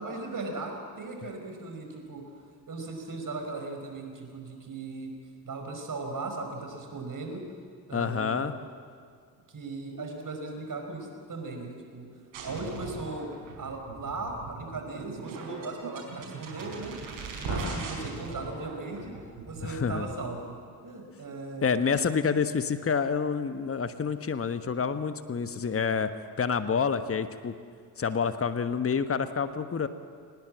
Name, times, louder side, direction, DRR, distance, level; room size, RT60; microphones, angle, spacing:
voice 1, 0.0-2.2 2.7-5.1 5.4-7.4 7.9-8.5 9.5-12.1 12.4-16.9 17.4-19.1 19.5-20.6 20.8-22.0, right 3 dB, 40° right, 3 dB, 5.3 m, -38 dB
voice 2, 7.9-8.5 17.5-17.8 19.6-20.1 21.6-27.5 28.0-29.9, left 6 dB, 30° left, 11 dB, 1.3 m, -28 dB
sound 1, 12.3-20.3, right 4 dB, 65° right, 5.1 m, -39 dB
23.5 x 20.0 x 7.5 m, 2.1 s
figure-of-eight pair, 40°, 49 cm